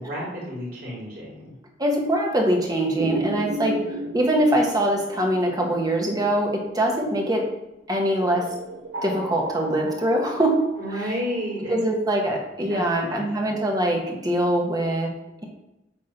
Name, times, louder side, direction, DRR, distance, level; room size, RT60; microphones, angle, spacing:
voice 1, 0.0-1.5 3.2-3.3 3.6-3.8 10.8-11.7 12.7-13.5, equal, 55° right, -5 dB, 3.3 m, -32 dB
voice 2, 1.8-7.4 7.9-8.5 9.0-10.6 11.0-11.1 11.7-15.1, right 1 dB, 20° right, 0 dB, 1.5 m, -23 dB
sound 1, 3.0-7.2 8.2-12.0, equal, 75° right, 0.8 m, -35 dB
9.1 x 3.8 x 5.8 m, 0.93 s
head